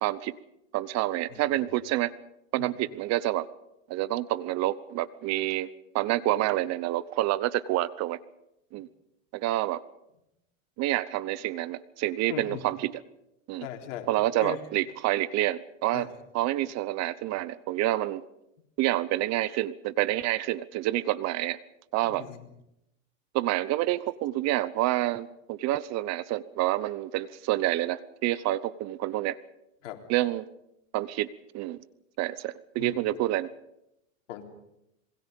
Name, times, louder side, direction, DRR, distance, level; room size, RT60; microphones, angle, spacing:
voice 1, 0.0-0.4 0.7-2.1 2.5-3.5 3.9-5.7 5.9-8.2 8.7-8.9 9.3-9.8 10.8-13.0 13.5-13.7 14.1-16.1 16.3-18.2 18.8-21.6 21.9-22.2 23.3-29.4 30.1-30.4 30.9-31.3 31.5-31.8 32.2-33.5, right 15 dB, 40° right, 18 dB, 0.9 m, -28 dB
voice 2, 12.3-12.6 13.6-14.1 14.4-14.6 15.9-16.0 22.0-22.4 29.8-30.0 32.8-33.0 34.3-34.4, left 11 dB, 70° left, 3 dB, 3.9 m, -38 dB
27.0 x 21.5 x 5.3 m, 0.85 s
hypercardioid pair, 105°, 39 cm